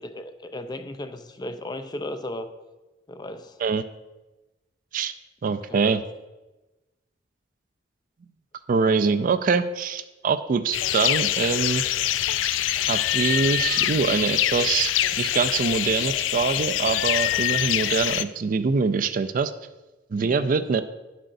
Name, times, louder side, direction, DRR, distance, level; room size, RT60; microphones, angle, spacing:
voice 1, 0.0-2.5 3.1-3.6 5.5-5.8 20.2-20.6, left 1 dB, 20° left, 9 dB, 0.4 m, -36 dB
voice 2, 5.4-6.0 8.7-11.8 12.9-19.5 20.1-20.8, right 5 dB, 45° right, 12 dB, 0.4 m, -24 dB
sound 1, 10.7-18.2, left 12 dB, 90° left, 0.3 m, -24 dB
10.0 x 7.6 x 2.6 m, 1.1 s
head